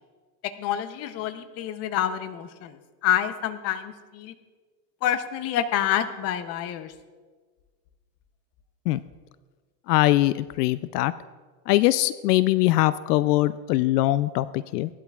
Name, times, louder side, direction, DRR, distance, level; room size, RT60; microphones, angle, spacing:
voice 1, 0.6-2.8 3.0-4.3 5.0-6.9, left 10 dB, 30° left, 10 dB, 0.7 m, -27 dB
voice 2, 9.9-11.1 11.7-14.9, left 16 dB, 75° left, 16 dB, 0.5 m, -22 dB
18.0 x 11.5 x 2.4 m, 1.4 s
supercardioid pair, 135°, 49 cm